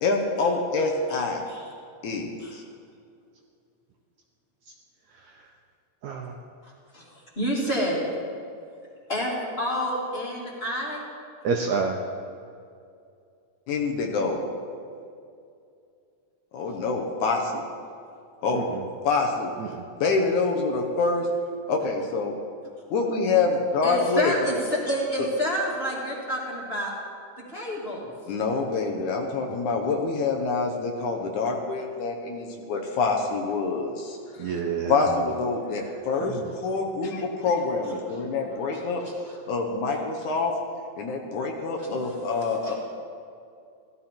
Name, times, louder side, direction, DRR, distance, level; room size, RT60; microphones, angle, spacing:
voice 1, 0.0-1.4 2.0-2.6 13.7-14.5 16.6-17.6 18.4-18.7 19.1-19.5 20.0-21.3 21.7-22.3 22.9-24.3 28.3-34.2 34.4-34.5 34.9-36.4 36.6-39.0 39.5-40.5 41.0-42.7, left 4 dB, 70° left, 2 dB, 2.2 m, -26 dB
voice 2, 6.0-6.3 11.4-12.0 18.5-18.9 19.6-19.8 34.4-35.1 36.4-36.5, right 5 dB, 75° right, 2 dB, 1.7 m, -28 dB
voice 3, 7.4-8.0 9.1-11.1 23.8-26.9 27.5-28.1 38.1-38.2 38.7-39.4 39.9-40.0 41.8-42.7, equal, 20° left, -4 dB, 2.4 m, -29 dB
16.0 x 13.0 x 4.4 m, 2.4 s
omnidirectional pair, 3.9 m